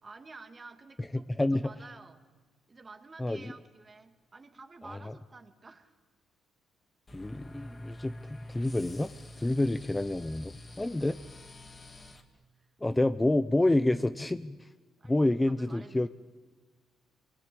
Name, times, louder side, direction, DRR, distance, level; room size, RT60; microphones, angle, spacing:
voice 1, 0.0-2.2 2.7-6.0 12.6-12.7 15.0-16.1, right 3 dB, 30° right, 6 dB, 2.4 m, -51 dB
voice 2, 3.2-3.5 4.8-5.0 7.1-9.1 9.4-11.1 12.8-14.7 15.1-16.1, left 1 dB, 15° left, 11 dB, 0.7 m, -28 dB
sound 1, 7.1-12.2, left 1 dB, 30° left, 2.7 m, -47 dB
25.0 x 21.5 x 8.7 m, 1.4 s
cardioid pair, 90°, 0 cm